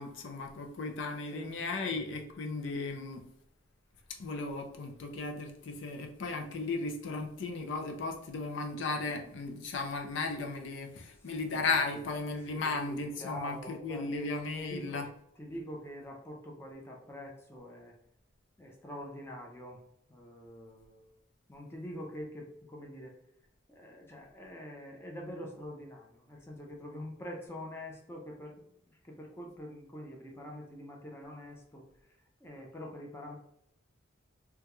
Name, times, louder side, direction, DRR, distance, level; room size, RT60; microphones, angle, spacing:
voice 1, 0.0-3.2 4.1-15.0, left 3 dB, 65° left, 3 dB, 0.4 m, -35 dB
voice 2, 1.3-2.0 11.2-14.3 14.6-15.1 15.3-17.9 18.6-19.8 20.1-21.1 21.5-23.2 23.7-32.2 32.4-33.4, equal, 10° left, -1 dB, 0.5 m, -45 dB
3.5 x 2.2 x 2.9 m, 0.74 s
head